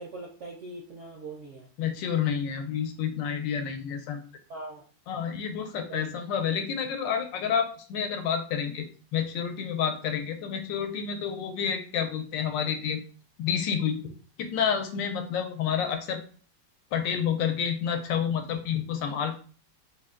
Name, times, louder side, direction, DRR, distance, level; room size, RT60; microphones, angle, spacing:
voice 1, 0.0-1.7 4.5-4.8 5.9-6.2, right 2 dB, 70° right, -1 dB, 0.7 m, -41 dB
voice 2, 1.8-4.3 5.1-8.9 9.1-13.1 13.4-14.0 14.4-16.2 16.9-19.3, left 7 dB, 85° left, 6 dB, 1.3 m, -29 dB
3.9 x 2.2 x 3.5 m, 0.39 s
omnidirectional pair, 2.0 m